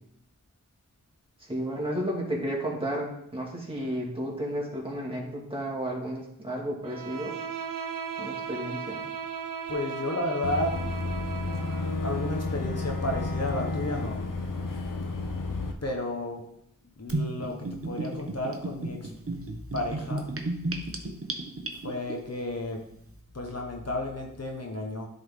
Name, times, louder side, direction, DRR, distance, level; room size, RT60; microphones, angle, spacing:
voice 1, 1.4-7.3 8.2-9.0, equal, 15° right, -3 dB, 2.1 m, -32 dB
Bowed string instrument, 6.8-12.0, right 7 dB, 80° right, 0.6 m, -36 dB
voice 2, 9.7-10.7 12.0-14.2 15.8-16.4 17.0-19.1 19.7-20.3 21.8-22.8 23.3-25.1, left 1 dB, 50° left, 1 dB, 1.1 m, -32 dB
Boat Water vehicle / Engine, 10.4-15.7, left 3 dB, 75° left, 0.8 m, -31 dB
Gurgling / Bathtub (filling or washing), 17.1-22.1, right 2 dB, 45° right, 1.0 m, -33 dB
11.5 x 3.9 x 3.7 m, 0.73 s
wide cardioid pair, 60°, 33 cm